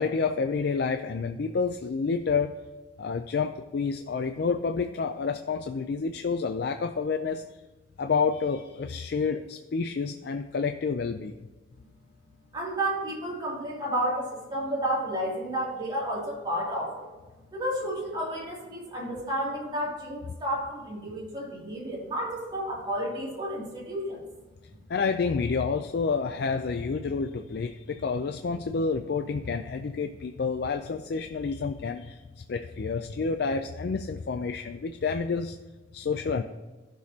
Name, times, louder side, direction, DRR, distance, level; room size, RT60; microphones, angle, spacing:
voice 1, 0.0-2.5 3.0-7.4 8.0-11.3 24.9-32.2 32.5-35.6 35.9-36.4, left 5 dB, 65° left, 8 dB, 0.4 m, -29 dB
voice 2, 12.5-17.1 17.5-24.2, right 1 dB, 25° right, -5 dB, 2.6 m, -31 dB
14.5 x 6.2 x 2.8 m, 1.2 s
head